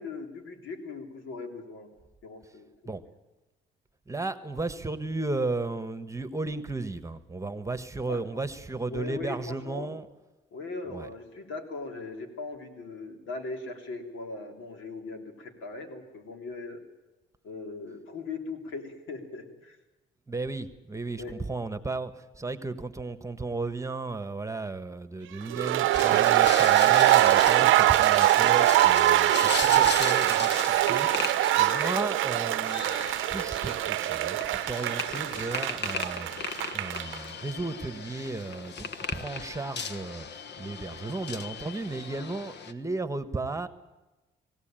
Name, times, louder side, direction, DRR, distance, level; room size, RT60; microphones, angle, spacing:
voice 1, 0.0-1.9 2.2-2.7 3.0-3.1 8.1-8.4 8.9-9.9 10.5-16.8 17.4-19.8 21.2-21.4 27.4-27.7 28.9-29.8 31.6-31.8 42.3-42.5, left 3 dB, 80° left, 4 dB, 3.4 m, -39 dB
voice 2, 4.1-10.0 10.9-11.1 20.3-29.4 29.7-31.3 31.6-43.7, right 3 dB, 15° right, 11 dB, 1.3 m, -34 dB
sound 1, 25.5-37.2, right 14 dB, 85° right, 0.7 m, -23 dB
sound 2, 25.9-42.7, left 6 dB, 60° left, 1.3 m, -37 dB
20.5 x 16.5 x 8.9 m, 1.1 s
cardioid pair, 90°, 20 cm